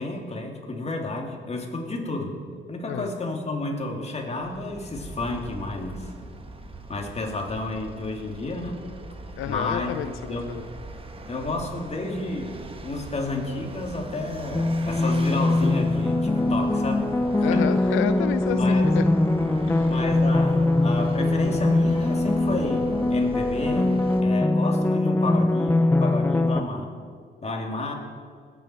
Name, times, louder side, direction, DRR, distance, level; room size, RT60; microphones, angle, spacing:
voice 1, 0.0-2.4 2.7-6.1 6.9-8.9 9.5-10.0 10.3-10.5 11.3-17.1 17.4-17.6 18.5-18.9 19.8-24.0 24.2-26.9 27.4-27.9, left 2 dB, 35° left, 1 dB, 2.8 m, -31 dB
Vehicle, 4.4-24.2, right 3 dB, 25° right, 1.5 m, -41 dB
voice 2, 9.4-10.6 17.4-19.0 19.7-20.0, left 11 dB, 85° left, 11 dB, 0.5 m, -30 dB
sound 1, 14.5-26.6, left 2 dB, 10° left, 0.5 m, -22 dB
20.0 x 9.4 x 4.5 m, 2.1 s
cardioid pair, 90°, 20 cm